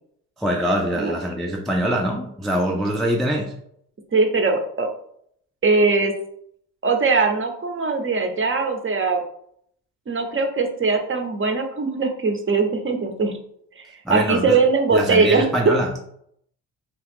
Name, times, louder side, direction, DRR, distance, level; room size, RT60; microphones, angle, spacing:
voice 1, 0.4-3.5 14.1-14.6 14.9-15.9, right 1 dB, ahead, 0 dB, 0.3 m, -23 dB
voice 2, 4.1-4.9 5.6-6.1 6.8-9.2 10.1-13.4 13.8-15.8, right 4 dB, 30° right, 4 dB, 0.6 m, -21 dB
2.8 x 2.3 x 3.4 m, 0.68 s
supercardioid pair, 75°, 41 cm